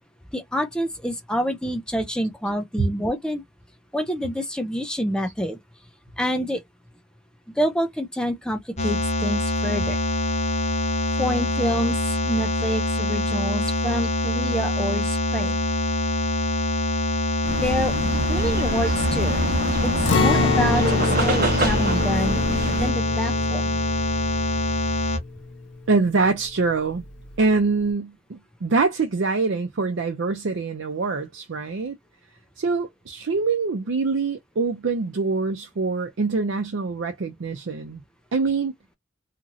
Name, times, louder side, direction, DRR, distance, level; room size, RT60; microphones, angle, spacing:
voice 1, 0.3-3.4 3.9-5.6 6.2-6.6 7.5-10.0 11.2-15.6 17.6-17.9 18.3-19.4 19.8-22.4 22.8-23.8, equal, 5° left, 0.5 m, -27 dB
sound 1, 8.8-25.2, left 1 dB, 40° left, 0.7 m, -24 dB
sound 2, 17.4-22.9, right 1 dB, 50° right, 1.0 m, -26 dB
Acoustic guitar, 20.1-26.0 26.3-26.4 26.9-27.4, left 4 dB, 70° left, 0.6 m, -27 dB
voice 2, 25.9-27.0 27.4-32.0 32.6-38.0 38.3-38.7, right 4 dB, 80° right, 0.5 m, -24 dB
2.9 x 2.7 x 2.5 m
head